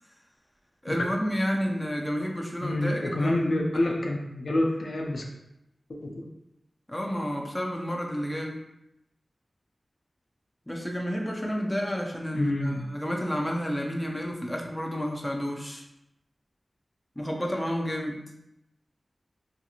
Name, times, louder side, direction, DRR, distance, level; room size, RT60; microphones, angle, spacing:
voice 1, 0.8-3.8 6.9-8.6 10.7-15.8 17.2-18.2, equal, 10° left, 1 dB, 0.4 m, -30 dB
voice 2, 2.6-5.3 5.9-6.2 12.3-12.8, left 1 dB, 75° left, 1 dB, 0.4 m, -27 dB
2.5 x 2.4 x 2.7 m, 0.84 s
wide cardioid pair, 65°, 0 cm